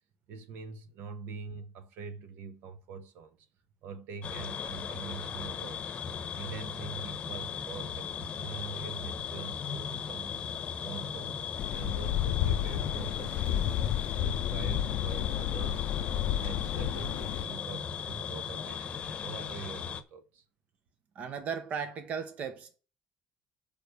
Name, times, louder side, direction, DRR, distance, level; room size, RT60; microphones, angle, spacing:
voice 1, 0.3-3.5 3.8-5.9 6.3-10.4 10.8-15.9 16.4-20.4, right 5 dB, 70° right, 1.2 m, -44 dB
sound 1, 4.2-20.0, left 7 dB, 30° left, 0.9 m, -37 dB
sound 2, 11.6-17.5, left 12 dB, 70° left, 0.4 m, -31 dB
voice 2, 21.1-22.8, right 6 dB, 45° right, 0.9 m, -36 dB
6.6 x 5.3 x 6.7 m
cardioid pair, 160°, 4 cm